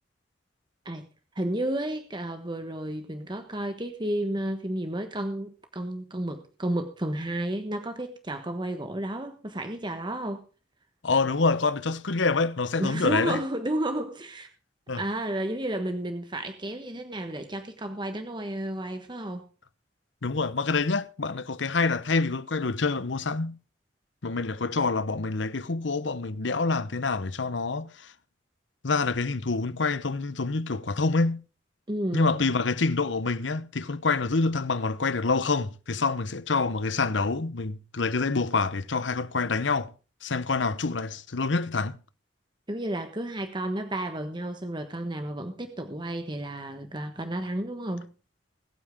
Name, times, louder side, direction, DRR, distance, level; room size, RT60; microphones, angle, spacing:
voice 1, 1.3-10.4 12.8-14.5 14.9-19.4 31.9-32.5 42.7-48.1, right 1 dB, 25° right, 1.3 m, -32 dB
voice 2, 11.0-13.4 14.9-15.0 20.2-23.6 24.2-28.1 28.8-31.4 32.1-39.9 40.2-42.0, left 3 dB, 85° left, 1.0 m, -27 dB
21.0 x 9.0 x 3.7 m
head